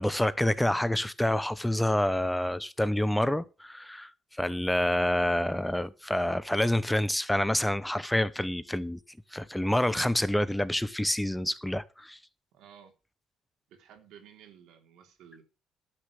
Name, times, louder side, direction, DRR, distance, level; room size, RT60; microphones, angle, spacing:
voice 1, 0.0-4.1 4.4-9.0 9.3-12.2, left 1 dB, 5° left, 0.8 m, -27 dB
voice 2, 12.5-12.9 13.7-15.4, right 8 dB, 90° right, 3.2 m, -54 dB
11.5 x 6.5 x 7.0 m
cardioid pair, 90°, 0 cm